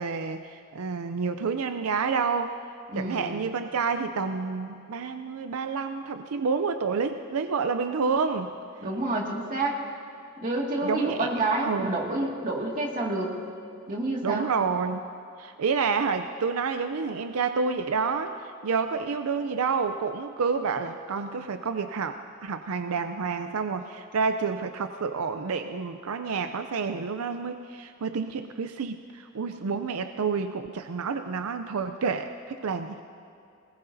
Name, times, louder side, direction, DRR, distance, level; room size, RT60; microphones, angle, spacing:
voice 1, 0.0-2.5 2.9-8.5 10.8-11.3 11.6-11.9 14.2-15.1 15.4-18.3 18.6-33.0, right 5 dB, 85° right, 8 dB, 0.5 m, -29 dB
voice 2, 2.9-3.4 8.8-9.8 10.4-13.3 13.9-14.5, right 2 dB, 40° right, -2 dB, 2.1 m, -28 dB
20.5 x 19.0 x 2.7 m, 2.5 s
head